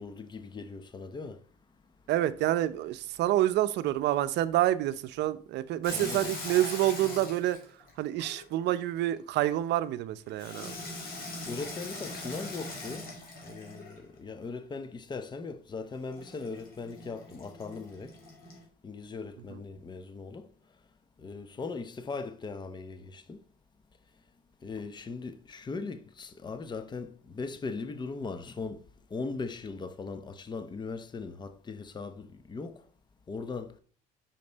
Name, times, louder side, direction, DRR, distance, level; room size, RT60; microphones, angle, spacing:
voice 1, 0.0-1.4 5.9-6.3 11.5-13.1 13.4-18.1 18.8-20.5 21.2-23.4 24.6-28.8 29.1-32.8 33.3-33.7, left 4 dB, 25° left, 0.7 m, -39 dB
voice 2, 2.1-7.6 8.0-10.7 19.5-19.6, right 14 dB, 65° right, 0.6 m, -28 dB
Water tap faucet / Sink (filling or washing), 5.8-8.8 10.4-14.1 16.1-18.6, left 2 dB, 50° left, 2.8 m, -41 dB
5.8 x 5.3 x 3.9 m
supercardioid pair, 95°, 19 cm